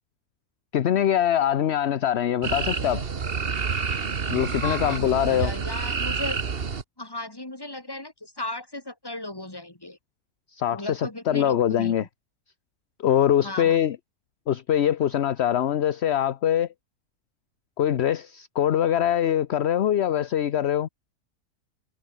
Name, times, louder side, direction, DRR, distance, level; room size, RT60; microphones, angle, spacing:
voice 1, 0.7-3.0 4.3-5.5 10.5-12.1 13.0-14.0 14.5-16.7 17.8-20.9, left 10 dB, 55° left, 0.9 m, -23 dB
sound 1, 2.4-6.8, right 5 dB, 40° right, 1.5 m, -28 dB
voice 2, 4.6-6.4 7.0-10.0 10.7-12.0 13.4-13.8, left 2 dB, 15° left, 2.7 m, -35 dB
omnidirectional pair, 1.6 m